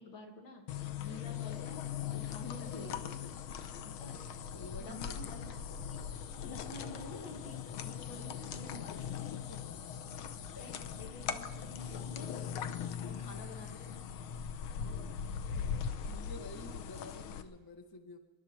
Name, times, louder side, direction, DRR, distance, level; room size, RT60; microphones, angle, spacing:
voice 1, 0.0-1.8 2.1-3.2 3.8-4.3 4.8-6.2 6.4-9.3 10.6-12.3 13.0-13.9, left 1 dB, 65° left, 1 dB, 2.9 m, -50 dB
sound 1, 0.7-17.4, left 8 dB, 85° left, 1.7 m, -40 dB
voice 2, 2.2-3.6 4.1-5.5 8.9-9.1 9.3-10.2 10.5-10.9 11.6-12.2 12.9-13.0 14.8-18.2, left 2 dB, 20° left, 6 dB, 0.5 m, -52 dB
26.0 x 11.5 x 4.4 m, 1.3 s
omnidirectional pair, 2.3 m